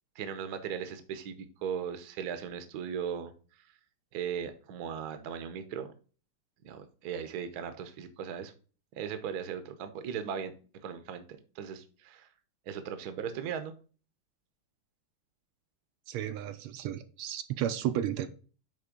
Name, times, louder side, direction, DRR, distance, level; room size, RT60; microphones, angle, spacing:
voice 1, 0.1-3.3 4.1-5.9 6.6-8.5 8.9-10.5 10.8-11.2 11.5-12.3 12.7-13.7, right 8 dB, 60° right, 9 dB, 1.2 m, -37 dB
voice 2, 16.1-18.3, right 11 dB, 80° right, 9 dB, 1.5 m, -33 dB
9.4 x 3.3 x 5.1 m, 0.39 s
omnidirectional pair, 2.4 m